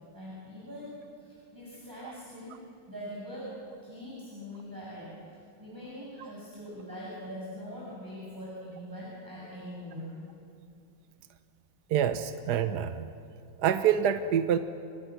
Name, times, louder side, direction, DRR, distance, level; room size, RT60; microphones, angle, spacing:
voice 1, 0.1-10.1, equal, 10° right, -7 dB, 6.4 m, -43 dB
voice 2, 11.9-13.1 13.6-14.6, right 9 dB, 60° right, 9 dB, 1.3 m, -26 dB
30.0 x 24.5 x 6.1 m, 2.6 s
omnidirectional pair, 2.2 m